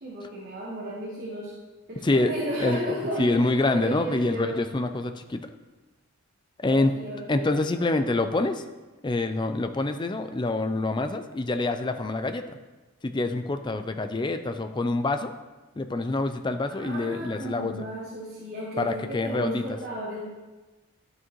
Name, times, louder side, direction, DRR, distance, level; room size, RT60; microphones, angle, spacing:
voice 1, 0.0-1.5 1.9-4.6 6.6-7.9 16.7-20.2, right 1 dB, 45° right, -6 dB, 1.4 m, -34 dB
voice 2, 2.6-5.5 6.6-6.9 7.3-8.6 9.0-12.6 13.0-15.3 15.8-17.9 18.8-19.8, left 2 dB, 20° left, 8 dB, 0.4 m, -26 dB
11.5 x 6.2 x 3.1 m, 1.2 s
head